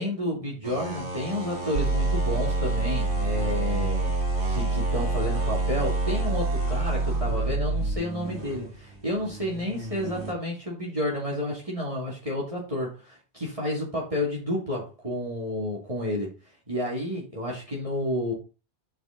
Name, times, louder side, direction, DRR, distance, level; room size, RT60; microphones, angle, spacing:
voice 1, 0.0-4.2 4.5-16.3 16.7-18.3, left 1 dB, 30° right, -4 dB, 2.6 m, -30 dB
sound 1, 0.6-10.3, right 2 dB, 75° right, 2.2 m, -35 dB
sound 2, 1.8-7.9, right 2 dB, 55° right, 0.9 m, -26 dB
8.9 x 6.4 x 3.9 m, 0.32 s
omnidirectional pair, 1.1 m